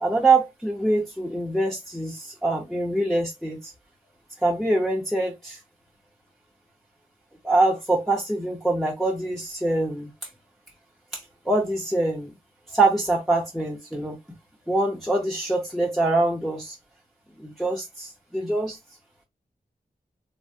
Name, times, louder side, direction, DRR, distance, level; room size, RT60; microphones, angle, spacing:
voice 1, 0.0-3.7 4.4-5.6 7.4-10.1 11.1-11.2 11.5-12.3 12.7-14.2 14.7-16.7 17.4-18.8, right 2 dB, ahead, 0.6 m, -24 dB
3.3 x 2.0 x 2.6 m
wide cardioid pair, 120°, 16 cm